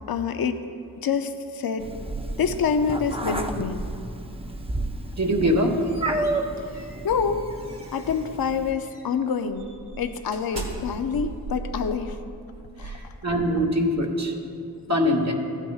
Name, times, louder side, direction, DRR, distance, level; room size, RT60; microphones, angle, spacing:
voice 1, 0.1-0.6 1.0-1.9 2.4-3.9 6.6-7.5 7.9-9.7 10.0-12.2 12.8-13.1, left 6 dB, 65° left, 8 dB, 0.6 m, -27 dB
Meow, 1.8-8.7, right 2 dB, 15° right, 0.7 m, -31 dB
voice 2, 5.1-5.8 12.8-13.0 13.2-14.3 14.9-15.3, equal, 40° right, 2 dB, 1.3 m, -22 dB
sound 1, 5.4-8.3 8.8-9.1 9.5-13.7, right 3 dB, 85° right, 1.5 m, -39 dB
15.0 x 9.0 x 2.4 m, 2.5 s
cardioid pair, 45°, 39 cm